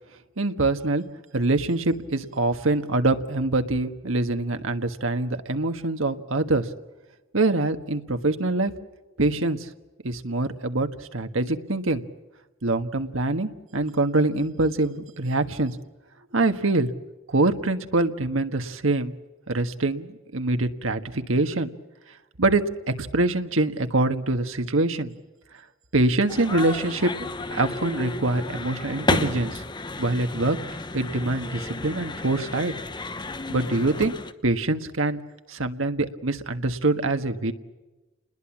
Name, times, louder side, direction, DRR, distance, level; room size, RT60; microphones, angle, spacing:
voice 1, 0.4-1.0 1.3-6.7 7.3-8.7 9.2-9.7 10.0-12.0 12.6-15.8 16.3-16.9 17.3-19.1 19.5-21.7 22.4-25.1 25.9-29.6 30.0-30.6 30.9-32.7 33.5-34.1 34.4-35.2 35.5-37.5, right 2 dB, 85° right, 7 dB, 1.6 m, -24 dB
sound 1, 26.3-34.3, left 2 dB, 20° left, 1.0 m, -32 dB
28.5 x 21.0 x 7.3 m, 1.1 s
head